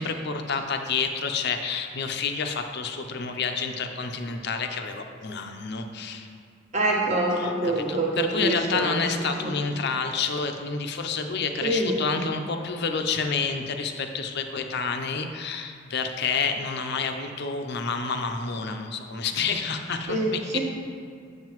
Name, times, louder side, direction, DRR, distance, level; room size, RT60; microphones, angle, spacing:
voice 1, 0.0-6.3 7.4-20.2, left 5 dB, 50° left, 5 dB, 0.5 m, -29 dB
voice 2, 6.7-9.5 11.6-12.0 20.1-20.6, right 1 dB, 35° right, -3 dB, 1.2 m, -26 dB
7.9 x 7.5 x 3.0 m, 2.4 s
head